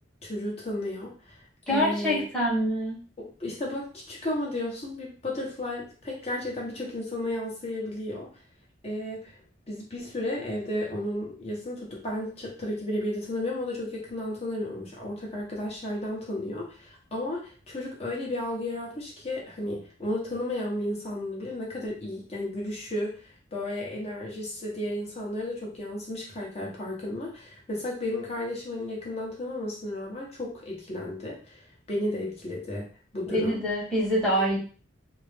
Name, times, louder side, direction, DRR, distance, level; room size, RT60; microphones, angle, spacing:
voice 1, 0.2-1.4 1.7-2.2 3.2-8.3 8.8-9.4 9.7-23.2 23.5-33.6 34.3-34.6, left 1 dB, 35° left, -3 dB, 1.0 m, -33 dB
voice 2, 1.7-3.0 33.3-34.6, equal, 5° left, -7 dB, 1.1 m, -25 dB
2.7 x 2.1 x 3.3 m, 0.39 s
head